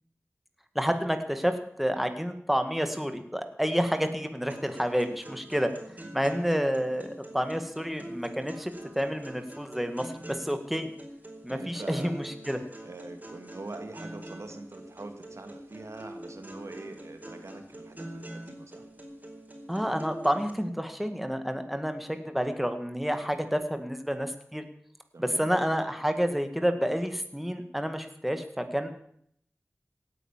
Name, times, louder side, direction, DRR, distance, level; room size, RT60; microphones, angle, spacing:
voice 1, 0.8-5.7 6.1-10.9 11.4-12.6 19.7-24.6 25.2-28.9, equal, 5° right, 7 dB, 1.9 m, -29 dB
sound 1, 4.5-20.5, right 1 dB, 35° right, 4.6 m, -45 dB
voice 2, 11.5-12.3 12.8-18.9 25.1-25.5, right 2 dB, 80° right, 6 dB, 2.2 m, -43 dB
17.5 x 9.3 x 7.4 m, 0.66 s
wide cardioid pair, 60°, 5 cm